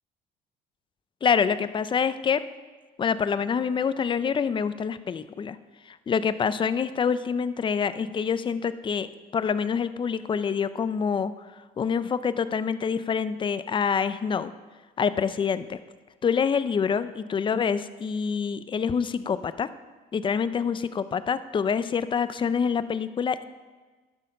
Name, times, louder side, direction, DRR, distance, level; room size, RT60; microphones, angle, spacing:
voice 1, 1.2-2.4 3.0-5.6 5.9-9.1 9.3-11.3 11.8-14.5 15.0-15.8 16.2-19.7 20.1-23.5, left 6 dB, 30° left, 14 dB, 0.5 m, -26 dB
11.5 x 6.5 x 5.4 m, 1.3 s
cardioid pair, 110°, 17 cm